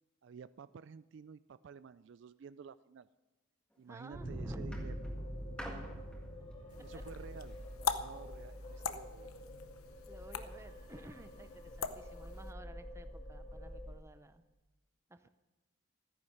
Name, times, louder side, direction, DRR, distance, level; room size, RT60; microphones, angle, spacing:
voice 1, 0.2-3.1 3.8-5.1 6.8-9.3, right 6 dB, 55° right, 15 dB, 0.3 m, -52 dB
sound 1, 3.7-4.1 4.7-7.9 8.8-8.9, equal, 5° left, 1.8 m, -51 dB
voice 2, 3.9-4.8 6.9-7.0 10.1-14.4 15.1-15.3, right 1 dB, 15° right, 10 dB, 0.7 m, -52 dB
sound 2, 4.1-14.0, equal, 30° left, 2.6 m, -46 dB
sound 3, 6.7-12.5, left 6 dB, 85° left, 0.8 m, -42 dB
14.0 x 9.9 x 6.5 m, 1.1 s
head